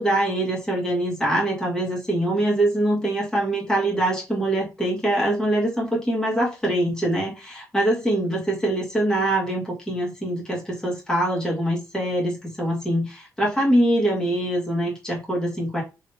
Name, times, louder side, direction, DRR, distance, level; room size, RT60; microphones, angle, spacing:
voice 1, 0.0-15.8, right 1 dB, 10° left, -4 dB, 1.6 m, -23 dB
3.7 x 3.0 x 2.7 m, 0.27 s
cardioid pair, 150°, 6 cm